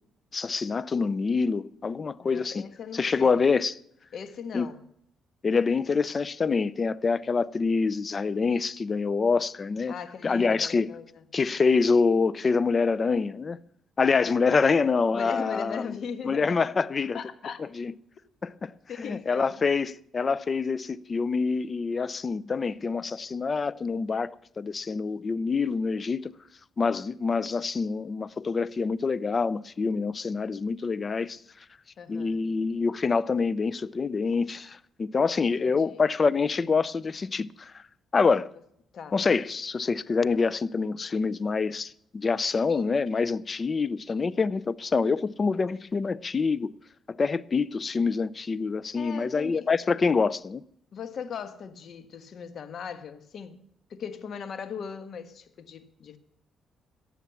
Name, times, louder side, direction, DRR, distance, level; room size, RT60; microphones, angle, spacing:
voice 1, 0.3-2.6 2.9-3.7 4.5-4.7 5.4-9.9 10.2-10.9 11.3-13.6 14.0-15.9 16.3-17.2 17.8-17.9 18.4-18.7 19.0-26.3 26.8-31.4 32.1-37.8 38.1-38.5 39.1-46.7 47.2-50.6, left 4 dB, 35° left, 0.5 m, -26 dB
voice 2, 2.2-3.5 4.1-4.8 9.9-11.2 15.1-16.6 17.1-17.6 18.6-19.7 32.0-32.4 35.4-36.0 38.9-39.2 48.9-49.7 50.9-56.2, left 6 dB, 60° left, 1.4 m, -39 dB
17.0 x 7.2 x 7.0 m
cardioid pair, 90°, 0 cm